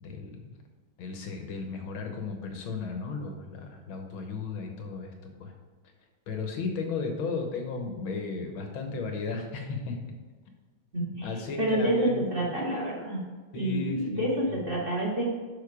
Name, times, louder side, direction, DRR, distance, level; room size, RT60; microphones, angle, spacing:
voice 1, 0.0-0.5 1.0-5.5 6.3-10.0 11.0-12.5 13.5-14.6, left 4 dB, 75° left, 3 dB, 1.9 m, -35 dB
voice 2, 10.9-11.3 11.6-13.2 13.5-15.2, right 1 dB, 25° right, -4 dB, 1.9 m, -28 dB
7.0 x 5.7 x 4.8 m, 1.4 s
omnidirectional pair, 2.2 m